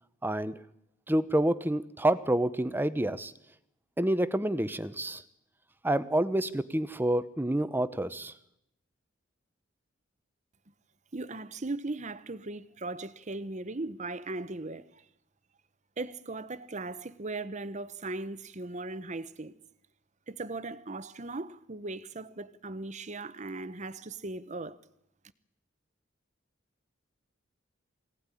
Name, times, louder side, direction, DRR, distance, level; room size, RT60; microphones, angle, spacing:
voice 1, 0.2-0.6 1.1-3.3 4.0-5.2 5.8-8.3, right 1 dB, 10° right, 0.9 m, -28 dB
voice 2, 11.1-15.0 16.0-19.5 20.3-24.8, right 2 dB, 35° right, 1.0 m, -38 dB
23.5 x 17.5 x 9.9 m
head